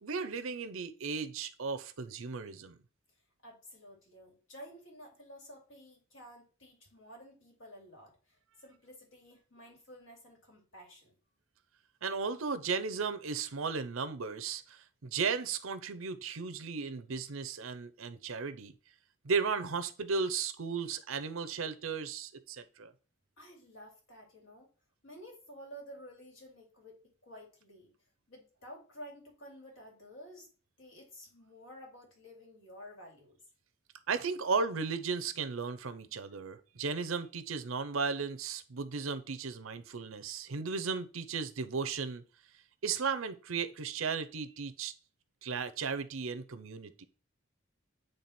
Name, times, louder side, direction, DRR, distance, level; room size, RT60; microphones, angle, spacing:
voice 1, 0.0-2.8 12.0-18.7 19.2-22.9 34.1-42.2 42.8-44.9 45.4-47.0, right 5 dB, 80° right, 0.7 m, -35 dB
voice 2, 3.4-11.1 23.4-24.7 25.0-27.9 28.3-30.5 30.8-33.4, equal, 75° left, 2.7 m, -52 dB
9.0 x 3.3 x 4.3 m
head